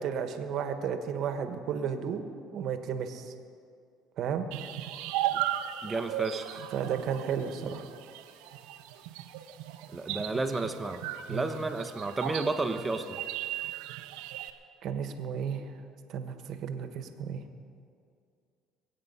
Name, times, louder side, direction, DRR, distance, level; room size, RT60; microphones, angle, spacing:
voice 1, 0.0-2.2 2.5-3.3 4.2-4.4 6.7-7.9 11.3-11.5 14.8-15.7 16.1-17.4, right 7 dB, 60° right, 8 dB, 1.3 m, -33 dB
sound 1, 4.5-14.5, right 12 dB, 85° right, 0.8 m, -36 dB
voice 2, 5.8-6.7 9.9-11.0 11.3-13.2, right 3 dB, 20° right, 8 dB, 1.1 m, -32 dB
22.5 x 8.7 x 5.6 m, 2.3 s
supercardioid pair, 100°, 0 cm